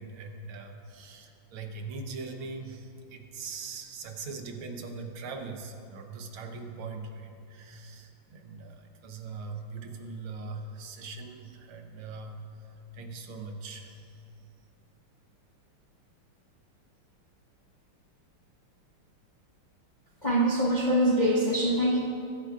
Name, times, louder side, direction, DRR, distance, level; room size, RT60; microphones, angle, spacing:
voice 1, 0.0-14.1, right 4 dB, 75° right, 3 dB, 1.7 m, -41 dB
voice 2, 20.2-22.0, right 1 dB, 40° left, -4 dB, 0.6 m, -24 dB
22.0 x 9.1 x 2.4 m, 2.6 s
omnidirectional pair, 2.4 m